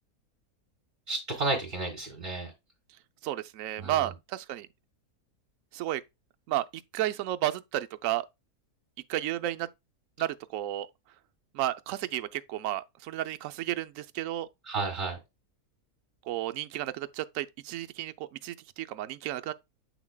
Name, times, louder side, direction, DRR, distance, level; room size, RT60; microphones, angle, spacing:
voice 1, 1.1-2.5 3.8-4.1 14.7-15.2, right 3 dB, 35° right, 2.2 m, -32 dB
voice 2, 3.2-4.7 5.7-6.0 6.5-8.3 9.1-9.7 10.2-10.9 11.5-14.5 16.3-19.5, right 13 dB, 70° right, 0.9 m, -32 dB
7.9 x 6.0 x 2.3 m
omnidirectional pair, 1.6 m